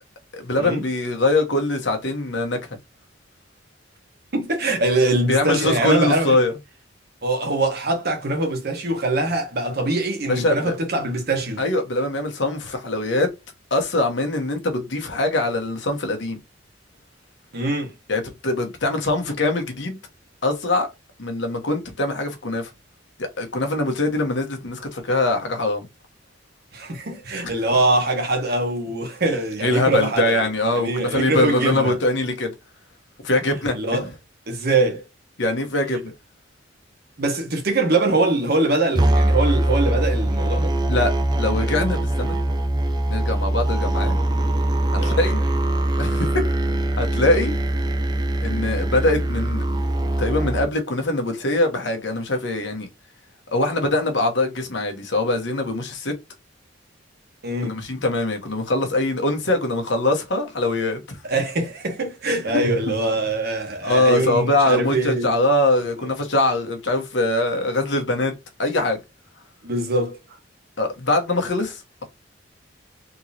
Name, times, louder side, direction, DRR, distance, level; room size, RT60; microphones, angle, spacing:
voice 1, 0.3-2.6 5.3-6.5 10.3-10.8 11.6-13.3 13.7-16.4 18.1-20.0 20.4-20.9 21.2-22.7 23.2-25.9 29.6-32.5 33.2-34.0 35.4-36.1 40.9-41.1 41.4-42.4 43.1-44.2 44.9-45.4 46.0-46.4 47.0-47.5 48.4-49.6 50.2-52.9 53.5-56.1 57.6-61.2 62.5-62.6 63.8-68.3 68.6-69.0 70.8-72.0, left 2 dB, 70° left, 1.1 m, -22 dB
voice 2, 4.3-6.4 7.2-11.6 17.5-17.9 26.7-30.5 30.8-32.0 33.7-34.1 34.5-35.1 37.2-40.7 45.0-45.3 57.4-57.8 61.2-65.3 69.6-70.2, right 2 dB, 60° right, 1.2 m, -23 dB
sound 1, 39.0-50.7, right 1 dB, 20° right, 0.5 m, -22 dB
3.7 x 3.0 x 2.8 m
head